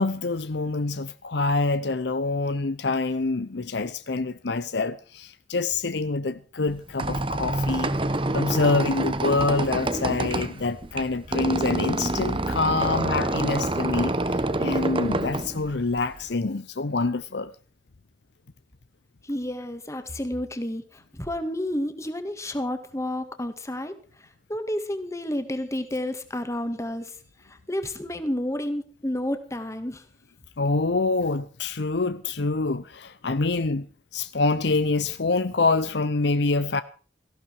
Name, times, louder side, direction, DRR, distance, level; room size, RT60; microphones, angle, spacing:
voice 1, 0.0-8.0 8.3-17.5 30.6-33.9 34.1-36.8, left 3 dB, 65° left, 0.8 m, -26 dB
Squeak, 6.7-16.3, right 2 dB, 30° right, 1.0 m, -27 dB
voice 2, 19.2-24.0 24.5-27.1 27.5-30.0, left 1 dB, 15° left, 1.9 m, -30 dB
18.0 x 15.5 x 4.8 m
head